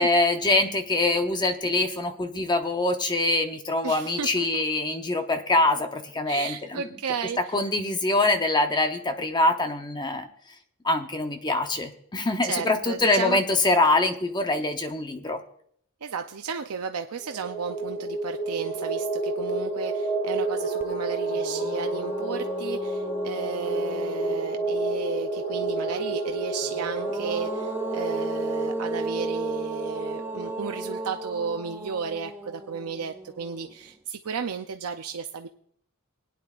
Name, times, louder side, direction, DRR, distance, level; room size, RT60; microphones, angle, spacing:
voice 1, 0.0-6.8 7.5-10.3 10.8-15.4, left 2 dB, 20° left, 6 dB, 0.8 m, -24 dB
voice 2, 3.8-4.6 6.3-7.6 12.4-13.4 16.0-35.5, right 6 dB, 85° right, 5 dB, 0.6 m, -34 dB
sound 1, 17.2-31.5, right 2 dB, 40° left, 4.8 m, -30 dB
sound 2, 20.8-20.9 21.3-24.9 26.6-33.9, right 2 dB, 10° right, 0.5 m, -36 dB
21.0 x 9.4 x 2.5 m, 0.65 s
head